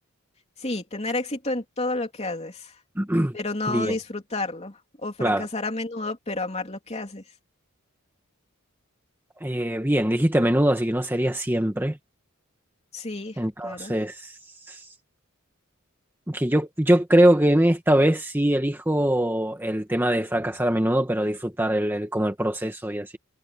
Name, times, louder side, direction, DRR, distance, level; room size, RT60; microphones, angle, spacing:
voice 1, 0.6-2.7 3.3-7.2 12.9-14.0, left 2 dB, 30° left, 3.1 m, -31 dB
voice 2, 3.0-3.4 3.7-3.9 5.2-5.5 9.4-12.0 13.4-14.4 14.7-14.9 16.3-23.2, right 1 dB, 10° right, 1.3 m, -22 dB
head